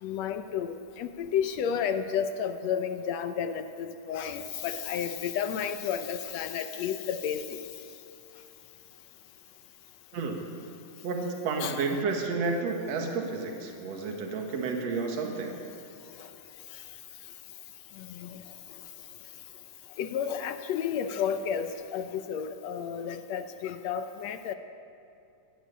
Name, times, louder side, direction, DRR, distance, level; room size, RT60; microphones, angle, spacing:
voice 1, 0.0-7.6 11.6-11.8 16.2-16.3 16.7-16.8 18.0-18.4 20.0-24.5, left 8 dB, 75° left, 9 dB, 1.6 m, -32 dB
voice 2, 10.1-10.5 11.0-15.6, right 4 dB, 55° right, 2 dB, 2.9 m, -31 dB
19.5 x 15.5 x 8.6 m, 2.6 s
omnidirectional pair, 3.9 m